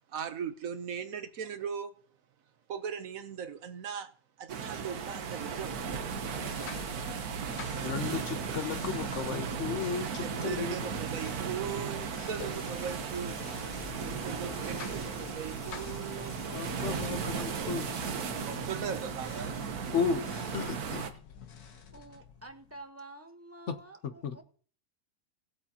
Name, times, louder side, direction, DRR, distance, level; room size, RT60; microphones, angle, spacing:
voice 1, 0.1-1.9 2.7-4.1 4.4-6.0 9.8-13.4 14.0-17.6 18.4-19.6, right 7 dB, 70° right, 1.2 m, -39 dB
sound 1, 4.5-21.1, right 6 dB, 85° right, 1.5 m, -36 dB
sound 2, 5.0-22.8, left 6 dB, 85° left, 1.6 m, -48 dB
voice 2, 7.8-10.9 16.5-17.9 19.9-21.2 23.7-23.8 24.0-24.4, left 6 dB, 60° left, 1.1 m, -34 dB
Water tap faucet, 12.4-18.2, left 3 dB, 25° left, 1.3 m, -51 dB
voice 3, 21.9-24.4, right 2 dB, 10° right, 1.0 m, -49 dB
18.5 x 8.1 x 2.9 m
omnidirectional pair, 1.6 m